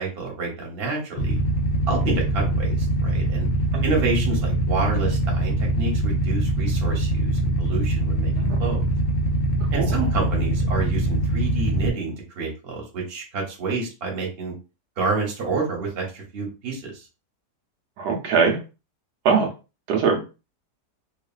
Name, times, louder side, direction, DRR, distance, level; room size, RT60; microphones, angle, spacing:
voice 1, 0.0-1.4 1.9-3.5 3.8-7.3 7.6-8.3 8.6-8.8 9.7-14.5 15.0-16.9, right 3 dB, 45° right, -1 dB, 1.0 m, -28 dB
Motorcycle / Idling, 1.2-11.9, right 1 dB, 65° left, 0.7 m, -23 dB
voice 2, 18.0-18.6 19.2-19.5 19.9-20.2, right 5 dB, 80° right, 1 dB, 1.2 m, -21 dB
3.0 x 2.3 x 2.3 m, 0.31 s
omnidirectional pair, 1.8 m